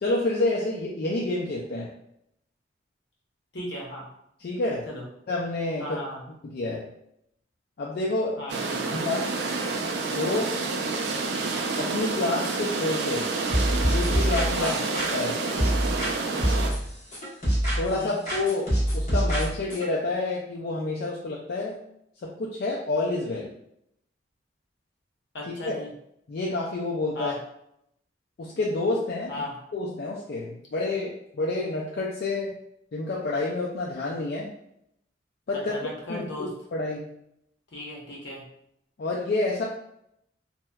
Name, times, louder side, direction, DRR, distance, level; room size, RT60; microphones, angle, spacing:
voice 1, 0.0-1.9 4.4-4.9 5.3-6.0 6.5-6.9 7.8-8.4 8.9-9.3 10.0-10.6 11.8-13.3 13.9-14.7 15.1-15.4 17.8-21.7 22.2-23.5 25.5-25.8 26.3-27.3 28.4-29.4 29.7-32.6 32.9-34.5 35.5-35.7 36.1-37.1 39.0-39.6, left 2 dB, 60° left, -4 dB, 0.3 m, -28 dB
voice 2, 3.5-4.1 4.9-5.0 5.8-6.2 8.4-8.9 14.6-14.8 17.9-18.2 25.3-25.9 27.1-27.4 29.3-29.6 35.5-36.5 37.7-38.4, left 1 dB, 75° left, -2 dB, 0.8 m, -36 dB
sound 1, 8.5-16.7, right 3 dB, 75° right, 0.4 m, -29 dB
sound 2, 13.5-16.1 16.4-18.0 18.3-19.9, equal, 40° left, 1.1 m, -25 dB
2.7 x 2.1 x 2.2 m, 0.75 s
head